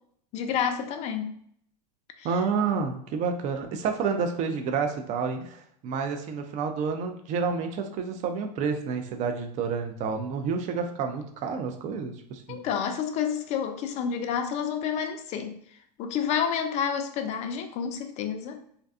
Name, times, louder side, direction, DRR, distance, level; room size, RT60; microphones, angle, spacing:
voice 1, 0.3-1.3 2.2-2.4 12.5-15.6 16.0-18.6, left 7 dB, 30° left, 7 dB, 0.4 m, -29 dB
voice 2, 2.2-12.7, right 5 dB, 35° right, 6 dB, 0.4 m, -29 dB
2.5 x 2.2 x 2.4 m, 0.66 s
hypercardioid pair, 105°, 21 cm